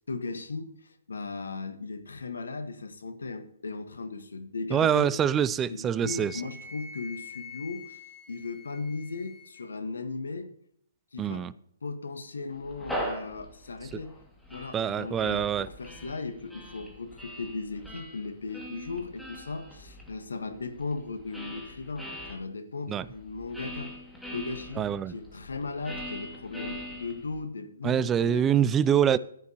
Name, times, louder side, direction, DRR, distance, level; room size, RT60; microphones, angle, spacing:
voice 1, 0.1-5.1 5.7-8.0 8.3-10.5 11.1-11.5 11.8-14.2 14.5-23.9 24.3-28.5, left 3 dB, 75° left, 1.6 m, -37 dB
voice 2, 4.7-6.3 11.2-11.5 14.7-15.7 22.9-23.0 24.8-25.1 27.8-29.2, right 9 dB, 15° right, 0.4 m, -25 dB
Wind instrument woodwind instrument, 6.0-9.7, left 5 dB, 20° left, 1.7 m, -46 dB
sound 1, 12.6-22.4 23.0-27.4, equal, ahead, 2.5 m, -41 dB
14.5 x 9.5 x 3.0 m
figure-of-eight pair, 130°, 0 cm